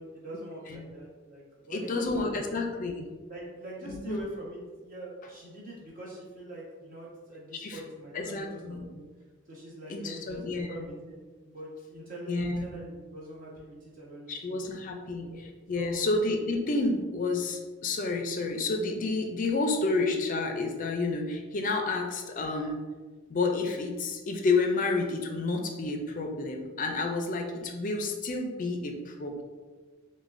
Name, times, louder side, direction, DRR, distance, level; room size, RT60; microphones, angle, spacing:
voice 1, 0.0-2.4 3.2-9.0 9.5-11.2 11.4-14.6 15.2-15.4 15.7-16.1, right 1 dB, 45° right, -6 dB, 1.2 m, -43 dB
voice 2, 1.7-3.1 3.9-4.2 7.5-7.8 8.1-8.9 9.9-10.7 12.3-12.7 14.3-22.8 23.3-29.4, left 3 dB, 40° left, 3 dB, 0.4 m, -30 dB
6.2 x 2.1 x 2.5 m, 1.4 s
head